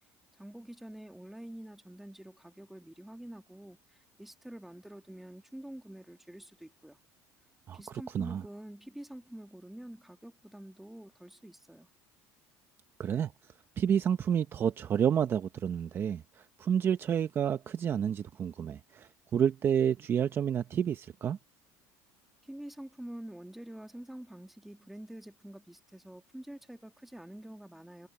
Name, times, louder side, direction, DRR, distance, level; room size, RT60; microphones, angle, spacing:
voice 1, 0.4-7.0 7.7-11.9 22.5-28.1, right 1 dB, 5° right, 1.9 m, -47 dB
voice 2, 7.7-8.4 13.0-13.3 13.8-21.4, right 8 dB, 30° right, 0.6 m, -30 dB
cardioid pair, 150°, 8 cm